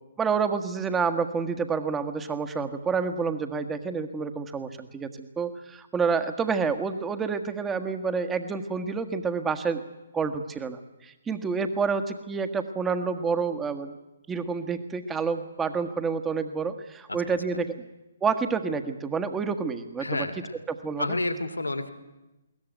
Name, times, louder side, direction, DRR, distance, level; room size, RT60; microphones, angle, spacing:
voice 1, 0.2-9.8 10.1-14.0 14.3-17.8 18.2-20.3 20.7-21.0, right 5 dB, 10° right, 8 dB, 1.6 m, -28 dB
voice 2, 20.0-20.6 21.0-21.9, left 2 dB, 85° left, 8 dB, 2.5 m, -30 dB
21.5 x 18.0 x 9.3 m, 1.0 s
figure-of-eight pair, 130°, 0 cm